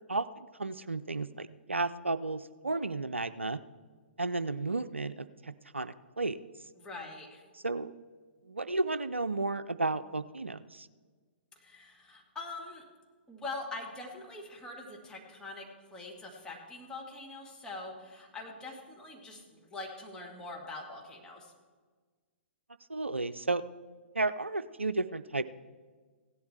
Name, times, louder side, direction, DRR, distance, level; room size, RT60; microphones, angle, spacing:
voice 1, 0.1-3.6 4.2-6.4 7.6-7.9 8.5-10.9 22.9-23.6 24.1-25.4, right 3 dB, 85° right, 14 dB, 0.4 m, -33 dB
voice 2, 6.8-7.4 11.6-12.8 13.3-21.5, left 2 dB, 10° left, -1 dB, 1.9 m, -43 dB
16.5 x 11.0 x 3.4 m, 1.5 s
figure-of-eight pair, 115°, 6 cm